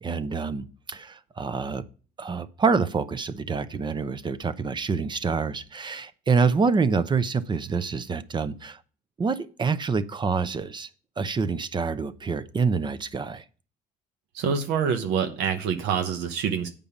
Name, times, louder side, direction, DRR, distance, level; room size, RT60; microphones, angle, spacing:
voice 1, 0.0-1.8 2.2-8.8 9.2-10.9 11.2-13.4, right 5 dB, 25° right, 0.7 m, -26 dB
voice 2, 14.3-16.7, right 7 dB, 90° right, 1.0 m, -26 dB
8.5 x 5.3 x 7.1 m
cardioid pair, 110°, 17 cm